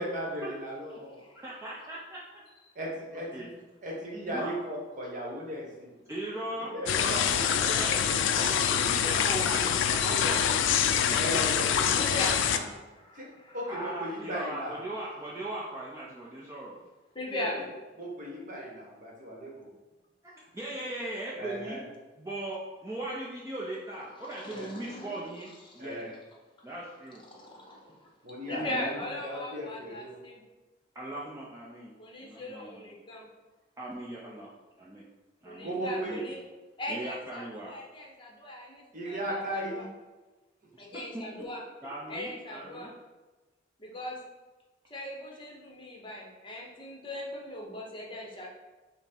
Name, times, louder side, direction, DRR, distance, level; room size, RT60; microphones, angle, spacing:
voice 1, 0.0-1.2 2.7-3.5 3.8-5.9 6.7-7.2 7.6-7.7 10.1-10.5 11.2-12.2 12.5-12.6 13.1-13.3 13.5-14.8 17.3-17.6 18.0-19.5 21.3-21.8 24.5-24.7 25.8-26.2 28.2-28.9 29.2-30.2 35.6-36.2 38.9-39.8, equal, 40° right, -3 dB, 1.0 m, -36 dB
voice 2, 1.4-2.2 3.1-3.5 4.3-4.5 6.1-8.0 8.3-10.7 11.1-11.4 13.7-16.8 20.2-21.8 22.2-26.1 26.6-27.2 28.5-29.0 30.9-31.9 32.2-32.9 33.8-34.5 34.8-35.0 35.4-36.2 36.9-37.7 40.9-41.5 41.8-42.9, right 1 dB, 15° right, -5 dB, 0.4 m, -39 dB
sound 1, 6.9-12.6, left 8 dB, 75° left, 0.3 m, -25 dB
voice 3, 12.0-12.6 12.9-13.6 14.0-14.1 17.1-17.7 24.2-25.9 27.3-28.1 28.5-30.4 32.0-33.3 35.4-36.4 36.8-39.8 40.8-41.6 42.1-42.9 43.8-44.2 44.9-48.5, left 1 dB, 25° left, -1 dB, 0.8 m, -40 dB
5.6 x 2.0 x 4.3 m, 1.2 s
head